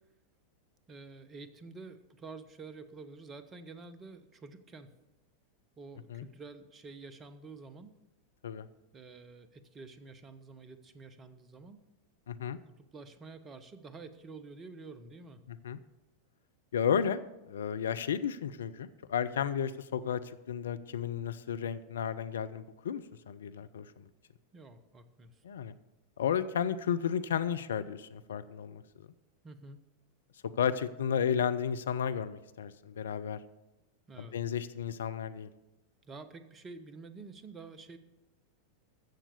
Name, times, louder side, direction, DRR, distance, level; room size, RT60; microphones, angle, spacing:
voice 1, 0.9-4.9 5.8-7.9 8.9-11.8 12.5-15.4 24.5-25.4 29.4-29.8 34.1-34.4 36.0-38.0, right 4 dB, 25° right, 12 dB, 1.0 m, -49 dB
voice 2, 12.3-12.6 15.5-15.8 16.7-17.2 17.5-24.0 25.4-25.7 26.2-29.1 30.6-33.4 34.2-35.5, left 8 dB, 65° left, 13 dB, 0.5 m, -33 dB
14.5 x 7.3 x 6.8 m, 1.0 s
figure-of-eight pair, 90°, 0 cm